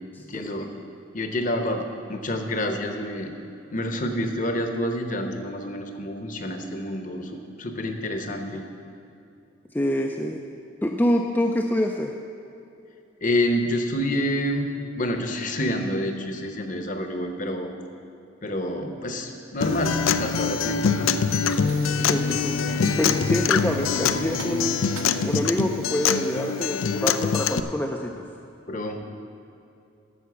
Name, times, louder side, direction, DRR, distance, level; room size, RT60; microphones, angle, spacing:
voice 1, 0.2-0.7 1.1-3.3 3.7-8.6 13.2-14.7 15.0-17.7 18.4-21.2 28.7-29.0, left 1 dB, 40° left, 5 dB, 0.9 m, -28 dB
voice 2, 9.7-10.4 10.8-12.1 22.1-24.8 25.2-28.2, left 1 dB, 10° left, 1 dB, 0.4 m, -26 dB
Acoustic guitar, 19.6-27.6, left 6 dB, 85° left, 0.4 m, -24 dB
sound 1, 19.6-27.2, right 2 dB, 75° right, 0.9 m, -38 dB
11.0 x 7.0 x 7.0 m, 2.6 s
head